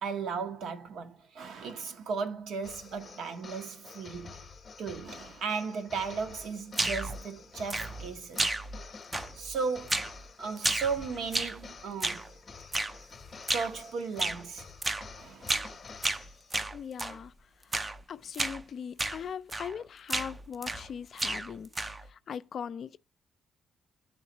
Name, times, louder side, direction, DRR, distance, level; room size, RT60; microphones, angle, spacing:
voice 1, 0.0-4.5 4.8-8.5 9.3-10.1 10.4-12.2 13.5-14.7 15.2-15.6, right 5 dB, 75° right, 1.0 m, -36 dB
sound 1, 2.6-16.7, left 5 dB, 35° left, 0.8 m, -49 dB
sound 2, 6.7-7.2 7.7-8.1 8.4-8.9 9.1-9.5 9.9-10.2 10.6-11.6 12.0-12.3 12.7-13.0 13.5-13.8 14.2-14.4 14.8-15.1 15.5-15.7 16.0-17.2 17.7-18.0 18.3-18.6 19.0-19.2 19.5-19.8 20.1-20.9 21.2-22.1, right 2 dB, 20° right, 0.4 m, -32 dB
voice 2, 16.7-21.7 22.0-23.0, left 7 dB, 55° left, 0.3 m, -40 dB
11.5 x 3.9 x 2.9 m
cardioid pair, 90°, 0 cm